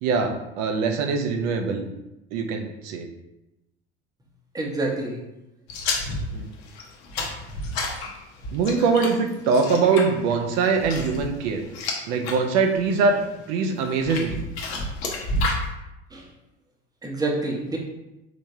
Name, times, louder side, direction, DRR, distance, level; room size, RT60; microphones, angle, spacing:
voice 1, 0.0-1.9 2.3-3.0 6.3-6.5 8.5-11.6 12.1-13.2 13.5-14.4, right 4 dB, 55° right, 4 dB, 0.7 m, -23 dB
voice 2, 4.5-5.2 16.1-16.2 17.0-17.8, right 2 dB, 10° right, -1 dB, 0.9 m, -27 dB
sound 1, 5.7-12.4 12.8-13.2 13.8-15.7, left 2 dB, 65° left, 0.9 m, -30 dB
4.9 x 3.4 x 2.7 m, 0.93 s
figure-of-eight pair, 65°, 33 cm